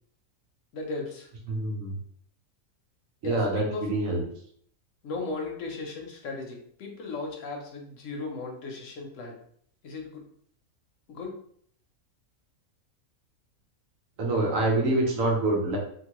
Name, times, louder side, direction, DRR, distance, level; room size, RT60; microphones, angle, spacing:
voice 1, 0.7-1.3 3.2-3.9 5.0-9.4 9.8-10.2 11.1-11.3, left 3 dB, 70° left, 2 dB, 1.0 m, -36 dB
voice 2, 1.5-1.9 3.2-4.2 14.2-15.8, right 2 dB, 75° right, -1 dB, 1.2 m, -26 dB
2.9 x 2.6 x 2.9 m, 0.63 s
omnidirectional pair, 1.4 m